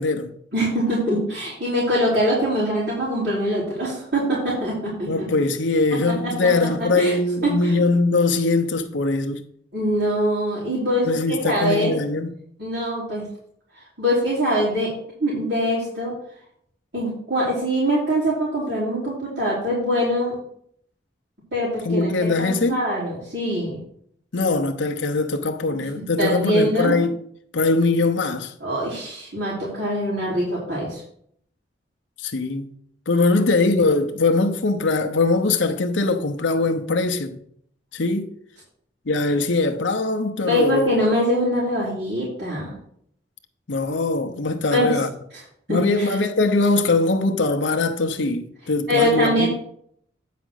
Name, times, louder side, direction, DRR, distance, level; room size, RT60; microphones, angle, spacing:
voice 1, 0.0-0.3 5.1-9.4 11.1-12.3 21.8-22.8 24.3-27.2 27.5-28.5 32.2-32.7 33.1-37.4 37.9-38.3 39.1-40.9 43.7-45.1 45.7-49.5, left 3 dB, 85° left, 0.8 m, -21 dB
voice 2, 0.5-5.1 5.9-7.1 7.4-7.7 9.7-11.9 12.6-13.3 14.0-14.9 15.2-16.1 16.9-20.3 21.5-22.1 22.4-23.8 26.2-27.0 28.6-31.0 40.4-42.7 44.7-45.0 45.7-46.1 48.9-49.5, equal, 70° right, 4.1 m, -23 dB
9.4 x 5.0 x 6.3 m
head